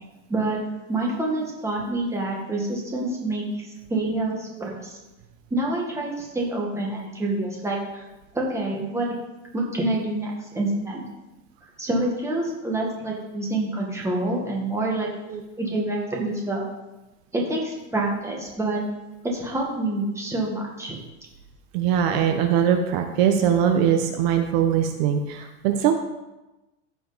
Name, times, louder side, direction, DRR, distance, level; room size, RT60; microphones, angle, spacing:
voice 1, 0.9-5.0 5.5-8.1 8.3-9.2 9.5-11.0 11.8-15.1 15.6-16.6 17.3-18.8 19.2-21.0, right 2 dB, 5° right, -2 dB, 1.5 m, -27 dB
voice 2, 21.7-25.9, right 8 dB, 55° right, 5 dB, 0.9 m, -21 dB
14.5 x 5.1 x 4.0 m, 1.0 s
supercardioid pair, 160°, 37 cm